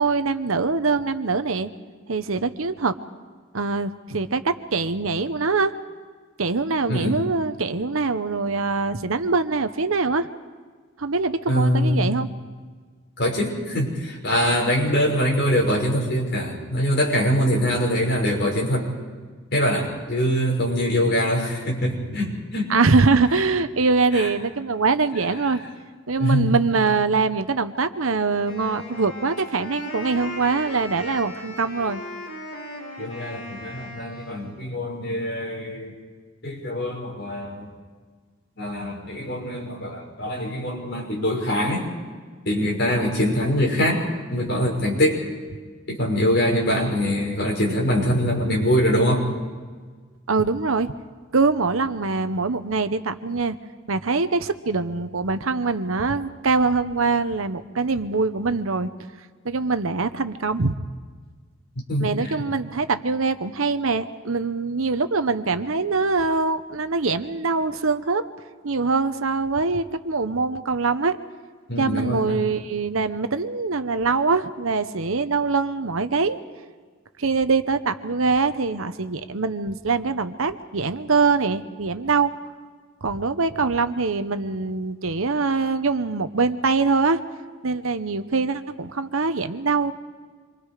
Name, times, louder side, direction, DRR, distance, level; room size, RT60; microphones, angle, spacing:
voice 1, 0.0-1.7 2.1-2.9 3.5-5.7 6.4-10.3 11.0-12.3 22.7-25.6 26.1-32.0 50.3-50.9 51.3-53.6 53.9-58.9 59.4-60.8 62.0-68.2 68.6-71.2 71.8-76.4 77.2-82.4 83.0-87.2 87.6-89.9, right 4 dB, 75° right, 10 dB, 1.0 m, -23 dB
voice 2, 11.5-12.1 13.2-18.9 19.5-22.7 24.1-24.3 26.2-26.6 33.0-35.9 36.4-37.7 38.6-41.9 42.4-44.0 44.3-45.2 45.9-49.3 61.9-62.1 71.7-72.4, equal, 50° left, -2 dB, 6.2 m, -23 dB
Wind instrument woodwind instrument, 28.4-34.6, left 1 dB, 25° left, 5.3 m, -37 dB
27.5 x 23.5 x 5.0 m, 1.5 s
head